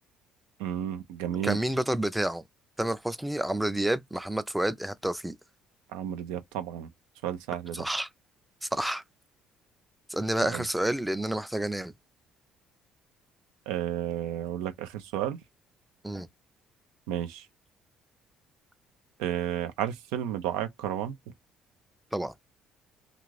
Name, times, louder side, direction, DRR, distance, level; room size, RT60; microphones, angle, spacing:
voice 1, 0.6-1.6 5.9-6.9 7.2-7.8 10.5-10.6 13.7-15.4 17.1-17.4 19.2-21.2, right 11 dB, 85° right, 0.4 m, -32 dB
voice 2, 1.4-2.4 2.8-5.4 7.7-8.1 8.6-9.0 10.1-11.9 16.0-16.3 22.1-22.3, right 1 dB, 5° right, 0.4 m, -29 dB
2.4 x 2.4 x 3.1 m
supercardioid pair, 65°, 0 cm